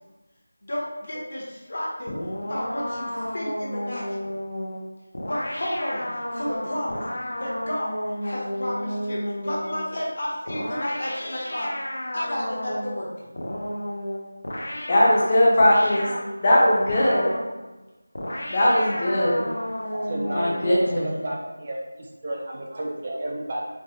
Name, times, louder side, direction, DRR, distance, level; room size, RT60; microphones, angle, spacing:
voice 1, 0.6-2.1 2.5-4.0 5.3-7.0 7.4-7.9 8.2-11.7 12.1-13.1, left 1 dB, 55° left, -4 dB, 0.9 m, -31 dB
sound 1, 2.1-9.9 10.5-13.0 13.4-16.3 16.9-17.5 18.1-21.0, equal, 70° left, 0.5 m, -32 dB
voice 2, 14.9-16.1 16.4-17.3 18.5-19.5 20.3-21.1, left 1 dB, 25° left, -4 dB, 0.6 m, -19 dB
voice 3, 19.9-21.8 22.2-23.7, right 1 dB, 30° right, -2 dB, 0.4 m, -31 dB
4.4 x 2.1 x 2.7 m, 1.1 s
figure-of-eight pair, 175°, 0 cm